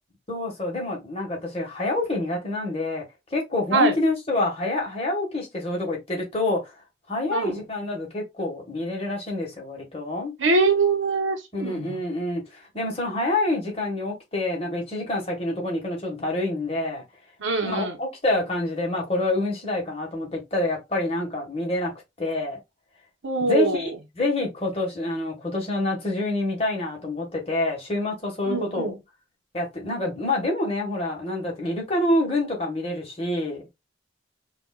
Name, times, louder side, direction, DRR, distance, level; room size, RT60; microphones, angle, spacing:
voice 1, 0.3-3.0 3.3-6.6 7.1-10.3 11.5-12.4 12.7-17.0 17.6-21.9 22.2-22.6 23.4-28.9 29.5-33.7, left 2 dB, 30° left, 1.5 m, -27 dB
voice 2, 10.4-12.0 17.4-18.0 23.2-23.9 28.5-29.0, right 3 dB, 85° right, 1.0 m, -23 dB
5.1 x 2.6 x 2.3 m
head